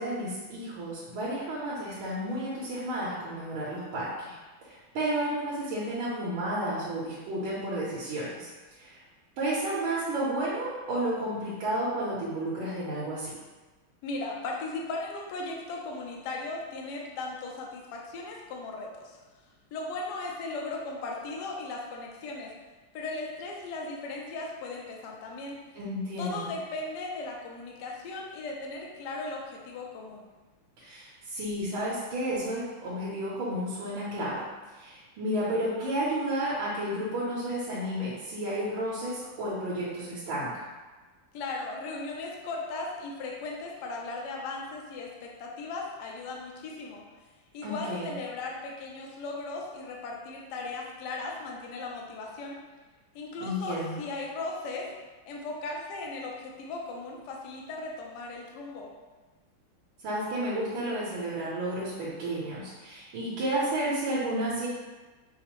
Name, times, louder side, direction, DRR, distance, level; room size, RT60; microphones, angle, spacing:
voice 1, 0.0-4.4 4.7-8.5 8.8-9.0 9.4-13.3 25.8-26.5 30.8-34.4 34.7-40.7 47.6-48.1 53.4-54.0 60.0-64.7, right 1 dB, 70° right, -8 dB, 1.5 m, -32 dB
voice 2, 14.0-19.2 19.7-22.5 22.9-25.6 26.2-30.3 41.3-47.0 47.5-52.6 53.1-54.9 55.3-58.9, left 3 dB, 80° left, -1 dB, 0.9 m, -37 dB
5.5 x 2.0 x 2.9 m, 1.3 s
omnidirectional pair, 2.4 m